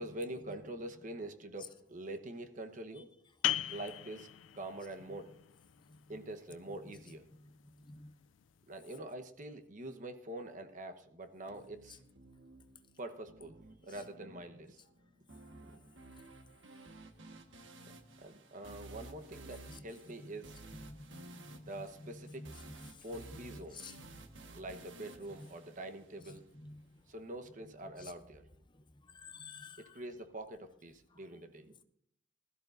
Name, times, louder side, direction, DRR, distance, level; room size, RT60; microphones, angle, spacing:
voice 1, 0.0-3.1 3.7-4.3 4.5-5.3 6.1-7.2 8.7-12.0 13.0-13.6 13.8-14.8 15.6-15.8 18.2-20.6 21.7-22.5 23.0-23.9 24.5-26.4 27.1-28.5 29.8-31.8, right 1 dB, 45° right, 1.1 m, -45 dB
sound 1, 3.4-8.8, left 12 dB, 90° left, 0.4 m, -41 dB
voice 2, 7.4-8.1 20.2-20.3 20.9-21.6 22.4-22.5 22.8-23.0 23.7-24.2 25.4-25.5 26.6-26.8 28.0-28.1 29.1-29.9, left 3 dB, 25° left, 0.6 m, -51 dB
sound 2, 11.5-26.5, right 2 dB, 80° right, 1.4 m, -54 dB
20.0 x 13.5 x 2.6 m
head